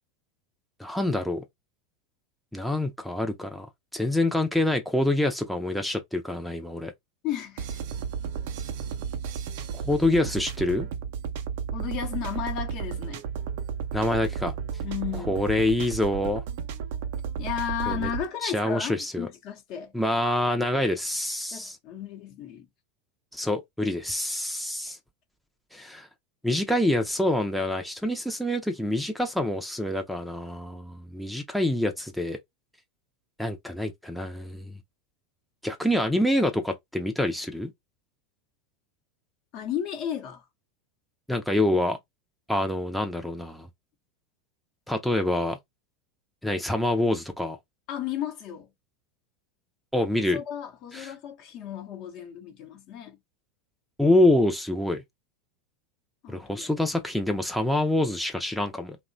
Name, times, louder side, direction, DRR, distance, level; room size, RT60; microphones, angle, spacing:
voice 1, 0.8-1.4 2.5-3.7 3.9-6.9 9.7-10.9 13.9-14.5 15.3-16.4 17.9-18.1 18.4-19.3 19.9-21.8 23.3-25.0 25.7-26.1 26.4-32.4 33.4-34.8 35.6-37.7 41.3-42.0 42.5-43.7 44.9-45.6 46.4-47.6 49.9-50.4 50.9-51.1 54.0-55.0 56.3-59.0, left 1 dB, ahead, 0.4 m, -26 dB
voice 2, 7.2-7.7 11.7-13.2 14.8-15.4 17.4-19.9 21.5-22.7 39.5-40.4 47.9-48.7 50.3-53.2 56.2-56.7, left 10 dB, 55° left, 0.7 m, -34 dB
sound 1, 7.6-18.3, right 7 dB, 70° right, 0.4 m, -33 dB
2.8 x 2.1 x 2.6 m
hypercardioid pair, 100°, 0 cm